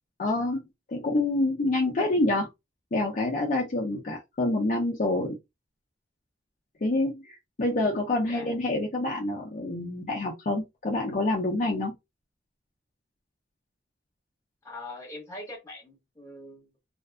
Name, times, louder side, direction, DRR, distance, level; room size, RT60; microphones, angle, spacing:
voice 1, 0.2-0.6 0.9-2.5 2.9-5.4 6.8-11.9, left 2 dB, 45° left, 0.5 m, -27 dB
voice 2, 14.6-16.7, left 1 dB, 15° left, 1.3 m, -42 dB
2.5 x 2.3 x 2.3 m
head